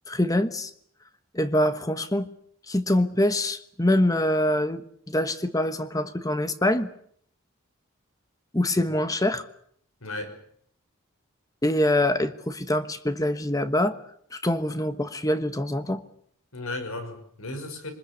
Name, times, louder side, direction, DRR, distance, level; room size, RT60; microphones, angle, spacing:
voice 1, 0.1-0.7 1.3-2.3 2.7-6.9 8.5-9.5 11.6-14.0 14.3-16.0, left 1 dB, 15° left, 11 dB, 1.2 m, -24 dB
voice 2, 10.0-10.4 16.5-17.9, left 2 dB, 85° left, 8 dB, 5.6 m, -35 dB
25.0 x 20.5 x 8.4 m, 0.65 s
head